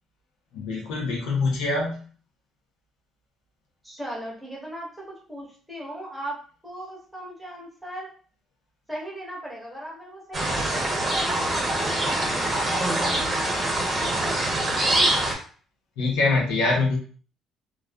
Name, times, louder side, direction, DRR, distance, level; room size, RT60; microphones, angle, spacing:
voice 1, 0.5-2.0 16.0-17.0, left 3 dB, 90° left, -2 dB, 0.8 m, -24 dB
voice 2, 3.8-6.4 6.6-8.1 8.9-14.6, right 1 dB, 5° right, -4 dB, 1.1 m, -38 dB
sound 1, 10.3-15.3, right 1 dB, 30° right, 0.8 m, -24 dB
2.4 x 2.4 x 2.3 m, 0.42 s
cardioid pair, 85°, 0 cm